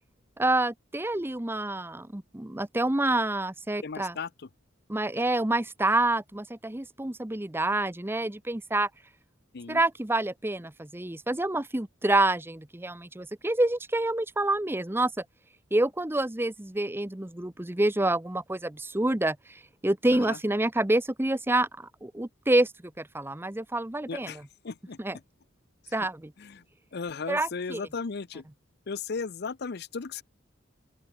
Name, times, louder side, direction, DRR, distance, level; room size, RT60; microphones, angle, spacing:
voice 1, 0.4-4.1 4.9-8.9 9.7-15.2 15.7-19.4 19.8-22.7 23.0-24.3 25.0-25.2 25.9-26.3 27.3-27.8, right 2 dB, 10° right, 0.8 m, -27 dB
voice 2, 3.8-4.5 9.5-9.8 20.1-20.4 24.1-25.0 25.8-26.1 26.4-26.6 26.9-28.4 28.9-30.2, left 5 dB, 55° left, 0.6 m, -36 dB
open air
head